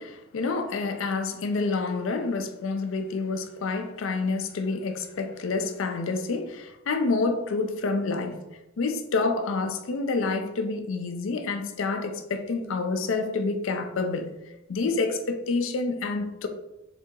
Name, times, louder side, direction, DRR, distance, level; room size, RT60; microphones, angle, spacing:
voice 1, 0.0-8.4 8.8-14.3 14.7-16.5, left 3 dB, 75° left, 0.5 m, -28 dB
3.8 x 2.7 x 3.6 m
head